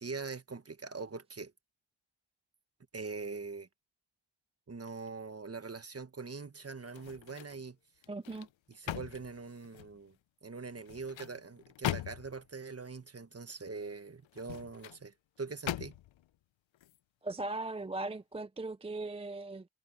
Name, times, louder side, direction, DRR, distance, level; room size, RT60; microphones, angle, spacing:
voice 1, 0.0-1.5 2.9-3.7 4.7-7.8 8.7-10.1 10.4-16.0, right 4 dB, 30° right, 1.4 m, -43 dB
sound 1, 6.9-7.6 8.0-10.0 10.7-12.5 14.2-15.0 15.7-16.3 16.7-17.0, left 13 dB, 80° left, 0.6 m, -40 dB
voice 2, 8.1-8.5 17.2-19.7, right 2 dB, 15° right, 0.4 m, -38 dB
wide cardioid pair, 125°, 45 cm